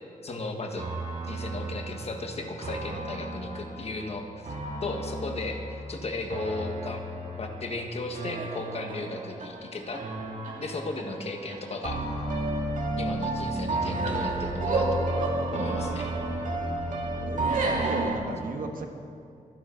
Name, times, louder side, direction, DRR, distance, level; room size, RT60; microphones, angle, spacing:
voice 1, 0.2-0.9 1.3-4.5 4.8-7.0 7.3-10.0 10.6-12.0 13.0-15.0 15.5-16.1, left 2 dB, 45° left, 3 dB, 1.5 m, -35 dB
sound 1, 0.8-18.2, right 2 dB, 65° right, 2.1 m, -31 dB
voice 2, 17.2-18.9, right 3 dB, 85° right, 4 dB, 1.5 m, -36 dB
24.5 x 10.0 x 3.9 m, 2.5 s
wide cardioid pair, 160°, 14 cm